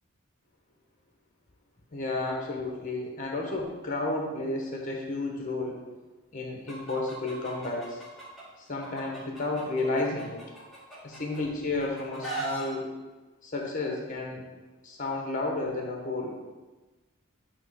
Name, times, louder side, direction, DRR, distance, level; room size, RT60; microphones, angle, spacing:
voice 1, 1.9-5.8 6.3-8.0 8.6-10.4 11.0-12.9 13.4-14.4 14.8-16.4, left 2 dB, 35° left, 0 dB, 1.1 m, -32 dB
Chicken rooster, 6.7-8.4 8.8-11.4 11.8-12.6, right 2 dB, ahead, 1.6 m, -38 dB
8.9 x 3.0 x 5.0 m, 1.2 s
head